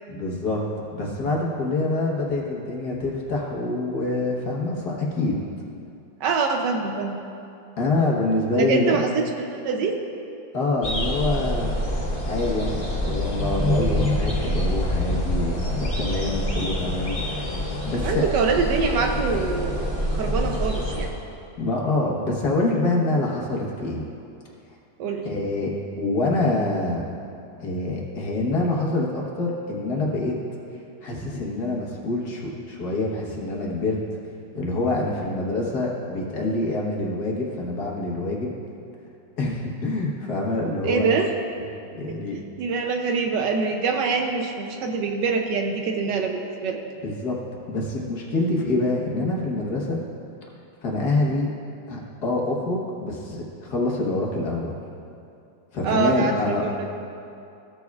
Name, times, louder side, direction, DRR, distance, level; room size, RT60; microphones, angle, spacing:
voice 1, 0.1-0.6 0.9-5.4 7.8-9.0 10.5-11.8 12.2-17.5 17.8-18.2 21.6-24.0 25.2-25.7 26.0-27.1 27.6-30.3 31.0-34.0 34.5-38.5 39.4-41.1 41.9-42.4 47.0-47.3 47.7-50.0 50.8-51.5 51.9-54.7 55.7-56.6, left 2 dB, 60° left, -2 dB, 1.6 m, -26 dB
voice 2, 6.2-7.2 8.6-9.1 9.4-10.0 18.0-19.9 20.1-21.1 25.0-25.3 40.8-41.3 42.1-42.2 42.6-46.8 55.8-56.7, right 4 dB, 75° right, 4 dB, 1.2 m, -24 dB
sound 1, 10.8-21.1, equal, 25° left, 1.9 m, -26 dB
15.5 x 6.9 x 2.4 m, 2.6 s
omnidirectional pair, 2.1 m